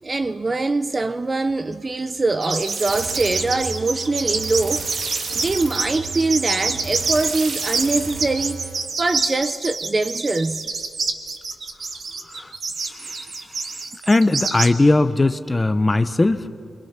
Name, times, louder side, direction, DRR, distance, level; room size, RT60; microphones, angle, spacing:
voice 1, 0.0-8.6 9.0-10.7, right 3 dB, 25° right, 0.6 m, -23 dB
sound 1, 2.4-14.7, right 4 dB, 50° right, 1.8 m, -27 dB
sound 2, 2.6-8.9, right 4 dB, 75° right, 2.8 m, -32 dB
voice 2, 12.9-13.2 14.1-16.5, left 2 dB, 15° left, 0.7 m, -19 dB
29.0 x 24.0 x 6.0 m
wide cardioid pair, 145°, 0 cm